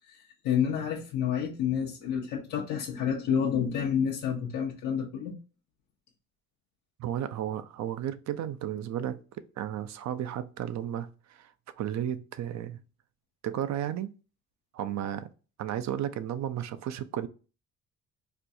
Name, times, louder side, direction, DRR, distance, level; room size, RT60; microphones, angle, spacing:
voice 1, 0.1-5.4, left 8 dB, 85° left, 0.7 m, -29 dB
voice 2, 7.0-11.5 11.8-12.8 13.4-14.1 14.7-15.3 15.6-17.3, right 10 dB, 65° right, 0.5 m, -33 dB
4.3 x 2.3 x 2.6 m
cardioid pair, 90°, 30 cm